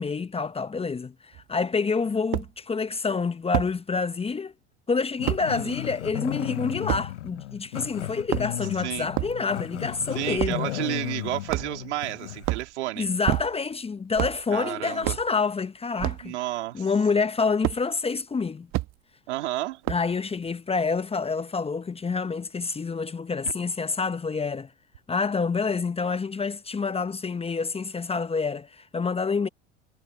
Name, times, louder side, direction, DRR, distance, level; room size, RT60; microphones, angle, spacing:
voice 1, 0.0-4.5 4.9-10.6 13.0-16.3 16.7-18.7 19.9-24.7 25.1-29.5, left 4 dB, 15° left, 1.1 m, -27 dB
sound 1, 1.3-1.4 2.3-2.5 3.5-3.7 5.3-5.4 6.9-7.1 8.1-8.7 9.1-9.4 10.4-10.6 11.5-11.9 12.4-12.7 13.2-13.7 14.1-14.4 15.0-15.3 16.0-16.3 17.6-17.8 18.7-18.9 19.8-20.2, right 19 dB, 50° right, 1.4 m, -28 dB
Growling, 5.2-12.5, left 14 dB, 80° left, 1.1 m, -34 dB
voice 2, 10.1-13.1 14.5-15.2 16.2-16.9 19.3-19.8, right 16 dB, 75° right, 3.8 m, -31 dB
hypercardioid pair, 80°, 35 cm